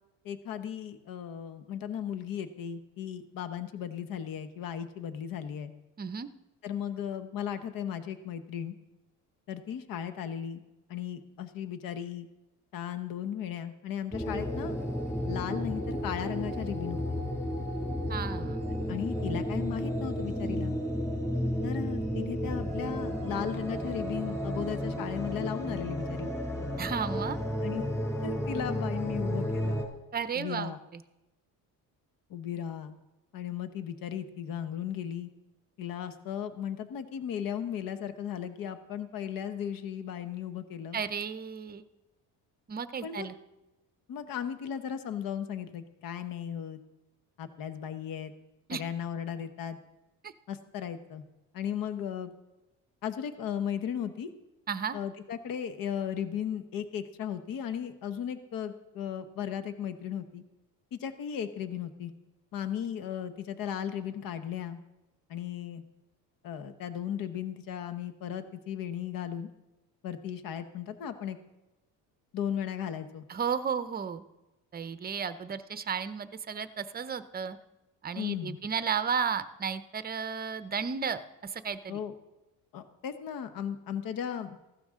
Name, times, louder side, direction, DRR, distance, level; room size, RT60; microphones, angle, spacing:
voice 1, 0.2-5.7 6.6-8.7 9.5-10.6 10.9-12.3 12.7-14.8 15.3-17.2 18.9-20.8 21.6-26.3 27.6-27.8 28.2-29.8 30.3-30.8 32.3-33.0 33.3-35.3 35.8-41.0 43.0-43.3 44.1-46.8 47.4-48.3 48.7-49.8 50.5-51.2 51.5-52.3 53.0-54.3 54.9-60.4 60.9-62.1 62.5-64.8 65.3-65.8 66.4-69.5 70.0-71.4 72.3-73.2 78.2-78.6 81.9-82.1 82.7-84.6, left 9 dB, 60° left, 10 dB, 1.1 m, -36 dB
voice 2, 6.0-6.3 18.1-18.6 26.8-27.4 30.1-31.0 40.9-41.8 42.7-43.4 48.7-48.8 50.2-50.3 54.7-55.0 73.3-74.2 74.7-77.6 78.0-82.0, right 6 dB, 25° right, 12 dB, 0.7 m, -33 dB
sound 1, 14.1-29.8, equal, 10° left, 5.2 m, -32 dB
15.5 x 12.0 x 3.7 m, 0.99 s
cardioid pair, 115°, 38 cm